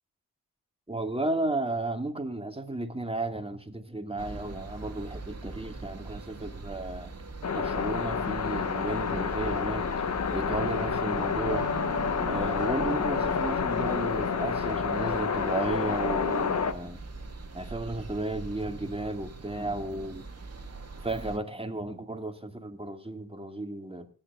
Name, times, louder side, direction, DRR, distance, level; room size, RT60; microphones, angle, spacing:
voice 1, 0.9-7.1 7.5-9.9 10.3-11.7 12.3-17.0 17.5-20.3 21.0-24.1, right 2 dB, 15° right, 2.0 m, -33 dB
sound 1, 4.2-21.4, right 3 dB, 40° right, 1.9 m, -41 dB
sound 2, 7.4-16.7, left 6 dB, 45° left, 0.9 m, -29 dB
25.5 x 8.9 x 2.4 m
cardioid pair, 55°, 37 cm